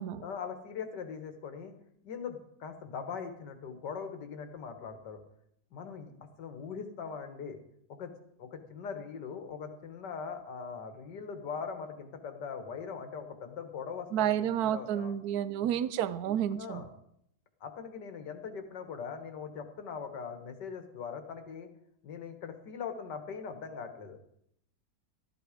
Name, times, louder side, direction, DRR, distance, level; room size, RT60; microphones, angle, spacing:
voice 1, 0.2-1.7 2.0-5.2 5.7-7.6 7.9-8.1 8.4-15.1 16.5-16.9 17.6-21.7 22.0-24.2, left 6 dB, 65° left, 7 dB, 2.0 m, -41 dB
voice 2, 14.1-16.8, right 10 dB, 65° right, 14 dB, 1.1 m, -30 dB
14.5 x 11.5 x 5.1 m, 0.73 s
omnidirectional pair, 2.0 m